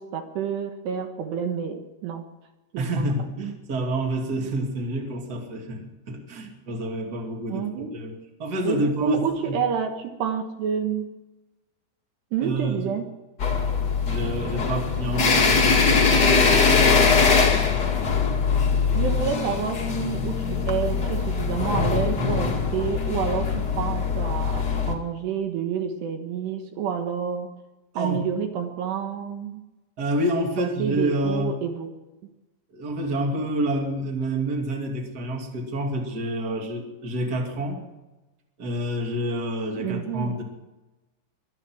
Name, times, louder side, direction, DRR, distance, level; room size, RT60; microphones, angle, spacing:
voice 1, 0.0-2.3 2.7-3.1 7.5-7.9 8.7-11.1 12.3-13.1 18.9-27.5 28.0-29.6 30.6-31.9 39.8-40.4, right 7 dB, 70° right, 5 dB, 3.4 m, -29 dB
voice 2, 2.8-9.6 12.4-13.0 14.1-16.4 16.7-17.0 27.9-28.2 30.0-31.6 32.7-37.8 38.6-40.4, right 1 dB, 25° right, 2 dB, 2.4 m, -28 dB
sound 1, 13.4-24.9, left 5 dB, 45° left, 1.4 m, -22 dB
23.5 x 10.0 x 6.2 m, 1.0 s
omnidirectional pair, 5.2 m